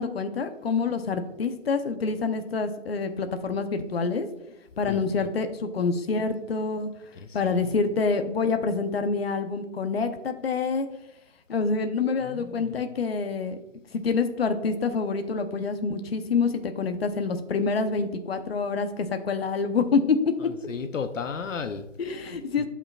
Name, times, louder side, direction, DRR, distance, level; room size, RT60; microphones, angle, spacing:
voice 1, 0.0-4.3 4.8-6.9 7.3-10.9 11.5-13.6 13.9-20.2 22.0-22.7, left 4 dB, 50° left, 7 dB, 0.9 m, -27 dB
voice 2, 12.2-12.8 20.7-21.8 22.6-22.7, left 6 dB, 80° left, 8 dB, 0.8 m, -33 dB
12.0 x 5.8 x 2.4 m, 0.89 s
hypercardioid pair, 165°, 38 cm